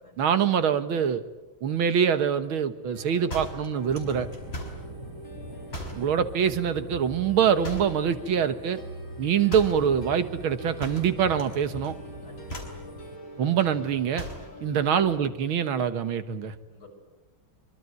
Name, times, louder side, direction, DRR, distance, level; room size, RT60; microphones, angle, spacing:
voice 1, 0.2-1.2 1.6-4.3 6.0-8.8 9.2-12.0 13.4-14.3 14.6-16.5, right 8 dB, 80° right, 11 dB, 2.1 m, -24 dB
sound 1, 2.9-15.2, equal, 75° left, 6.5 m, -44 dB
sound 2, 3.3-4.9 5.7-6.1 7.6-8.1 9.5-9.9 10.8-11.6 11.8-12.1 12.5-12.8 14.1-14.5, equal, 30° left, 5.1 m, -38 dB
sound 3, 3.9-13.2, right 1 dB, 55° right, 3.2 m, -43 dB
voice 2, 4.5-4.8 12.2-12.7 14.3-14.7 16.7-16.9, left 2 dB, 45° left, 2 dB, 6.7 m, -54 dB
25.0 x 24.0 x 9.5 m, 1.0 s
omnidirectional pair, 2.2 m